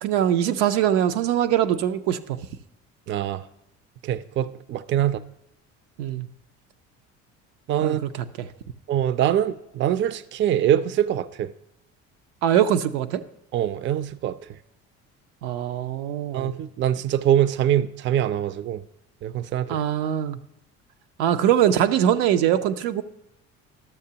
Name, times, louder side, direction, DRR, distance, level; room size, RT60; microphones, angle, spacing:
voice 1, 0.0-2.2 6.0-6.3 7.8-8.1 12.4-13.2 15.4-16.5 19.7-20.4 21.2-23.0, right 10 dB, 85° right, 0.5 m, -22 dB
voice 2, 3.1-3.4 4.0-5.2 7.7-8.0 8.9-11.5 13.5-14.4 16.3-18.8 19.2-19.8, right 11 dB, 35° right, 0.4 m, -23 dB
12.0 x 6.6 x 2.8 m
supercardioid pair, 80°, 33 cm